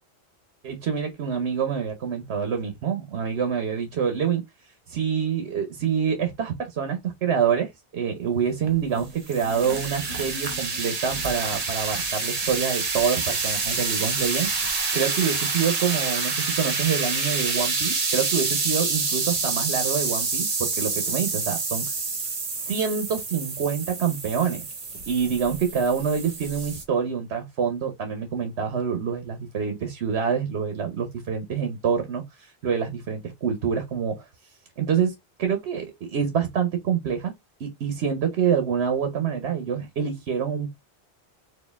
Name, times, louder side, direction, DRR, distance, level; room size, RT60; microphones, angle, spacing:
voice 1, 0.6-4.4 4.9-21.9 22.7-24.7 25.1-34.3 34.8-35.1 35.4-37.3 37.6-40.7, right 7 dB, 80° right, 1.1 m, -26 dB
sound 1, 8.6-26.8, right 4 dB, 40° right, 0.9 m, -28 dB
4.4 x 2.6 x 3.4 m
omnidirectional pair, 1.1 m